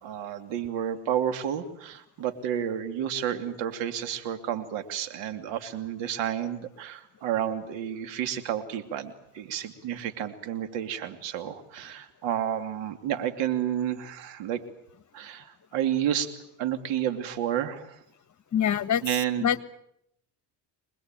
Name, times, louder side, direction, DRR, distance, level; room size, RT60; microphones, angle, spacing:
voice 1, 0.0-14.6 15.1-16.3 16.6-18.0 19.0-19.5, right 10 dB, 75° right, 8 dB, 2.9 m, -31 dB
voice 2, 18.5-19.0 19.4-19.6, left 9 dB, 40° left, 14 dB, 1.6 m, -24 dB
25.5 x 20.5 x 9.1 m, 0.75 s
supercardioid pair, 90°, 44 cm